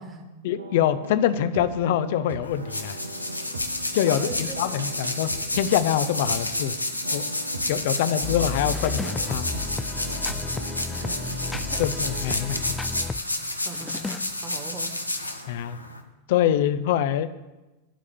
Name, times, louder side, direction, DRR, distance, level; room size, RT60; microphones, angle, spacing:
voice 1, 0.4-3.0 3.9-5.3 5.6-6.8 7.1-7.2 7.7-9.5 11.8-12.6 15.5-15.8 16.3-17.3, left 10 dB, 50° left, 13 dB, 0.6 m, -24 dB
sound 1, 0.6-12.6, right 2 dB, 75° right, 0.9 m, -40 dB
sound 2, 2.4-16.0, left 1 dB, 85° left, 1.0 m, -30 dB
voice 2, 4.1-4.9 8.2-8.5 10.9-11.4 11.7-11.9 13.5-14.1 14.3-15.0, right 3 dB, 20° right, 5 dB, 1.7 m, -40 dB
sound 3, 8.2-13.2 13.7-14.2, left 3 dB, 10° left, 0.4 m, -33 dB
11.5 x 4.9 x 8.4 m, 1.1 s
figure-of-eight pair, 90°, 0 cm